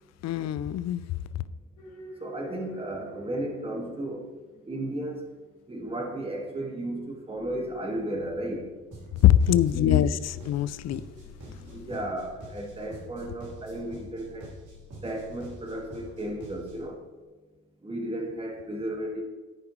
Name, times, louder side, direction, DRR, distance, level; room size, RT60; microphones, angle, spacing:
voice 1, 0.2-1.0 9.2-10.1 10.5-11.0, left 11 dB, 60° left, 16 dB, 0.4 m, -22 dB
sound 1, 1.8-12.3, equal, 80° left, 1.7 m, -51 dB
voice 2, 2.2-4.2 4.7-5.2 5.7-8.7 9.7-10.0 11.7-14.5 15.0-17.0 17.8-19.2, right 1 dB, 20° right, 0 dB, 1.6 m, -34 dB
sound 2, 8.9-16.9, equal, 85° right, 2.7 m, -46 dB
13.5 x 4.8 x 3.2 m, 1.3 s
cardioid pair, 90°, 30 cm